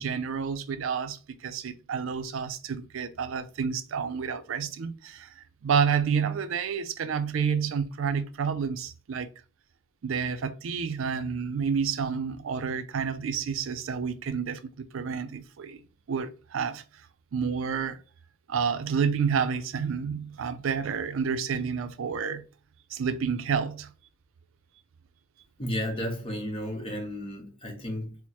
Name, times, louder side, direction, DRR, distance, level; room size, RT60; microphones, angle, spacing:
voice 1, 0.0-5.3 5.6-9.3 10.0-15.8 16.1-16.8 17.3-18.0 18.5-22.5 22.9-23.9, right 6 dB, 80° right, 0.4 m, -29 dB
voice 2, 25.6-28.2, equal, 30° left, 0.8 m, -33 dB
4.5 x 2.0 x 2.9 m
head